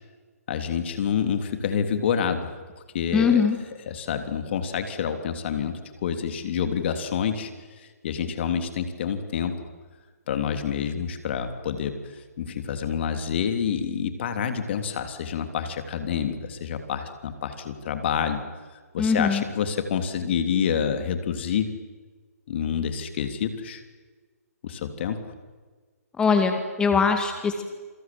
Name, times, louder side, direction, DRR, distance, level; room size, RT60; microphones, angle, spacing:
voice 1, 0.5-2.5 2.9-3.5 3.9-7.5 8.0-9.5 10.3-12.0 12.4-18.4 18.9-21.7 22.5-23.8 24.6-25.2, left 7 dB, 45° left, 7 dB, 3.3 m, -27 dB
voice 2, 3.1-3.6 19.0-19.4 26.2-27.6, left 5 dB, 10° left, 5 dB, 2.1 m, -21 dB
27.5 x 25.5 x 7.8 m, 1.4 s
figure-of-eight pair, 135°, 9 cm